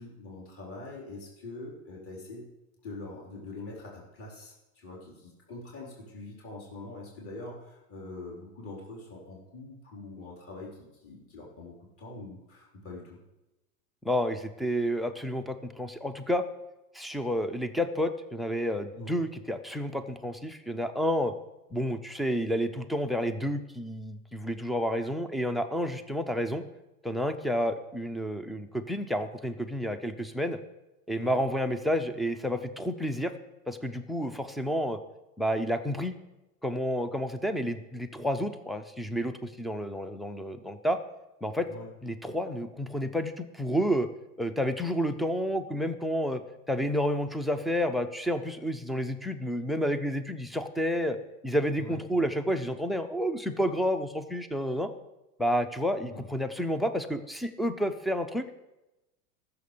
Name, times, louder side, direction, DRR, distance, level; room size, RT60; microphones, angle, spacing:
voice 1, 0.0-2.4 2.8-13.2 18.9-19.1 31.2-31.4 41.7-41.9 51.8-52.0 56.0-56.3, left 2 dB, 30° left, -4 dB, 3.8 m, -44 dB
voice 2, 14.0-16.4 16.9-21.3 21.7-26.6 27.0-30.6 31.1-33.3 33.7-35.0 35.4-36.2 36.6-41.0 41.4-41.7 42.0-44.1 44.4-46.4 46.7-51.2 51.4-54.9 55.4-58.5, equal, ahead, 10 dB, 0.4 m, -30 dB
14.0 x 6.9 x 6.6 m, 0.98 s
hypercardioid pair, 120°, 45 cm